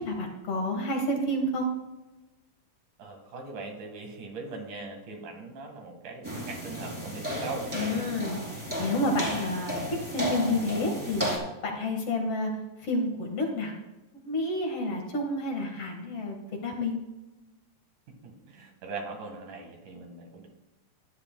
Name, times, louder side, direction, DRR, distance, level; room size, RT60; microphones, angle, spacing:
voice 1, 0.0-1.7 7.7-8.4 8.8-11.3 11.6-12.5 12.8-13.7 14.1-17.0, left 1 dB, 55° left, 2 dB, 2.3 m, -29 dB
voice 2, 3.0-7.7 15.1-15.2 18.2-20.5, right 3 dB, 85° right, 3 dB, 3.2 m, -40 dB
sound 1, 6.2-11.4, equal, 5° right, 2.6 m, -33 dB
15.0 x 10.5 x 2.2 m, 1.0 s
omnidirectional pair, 3.5 m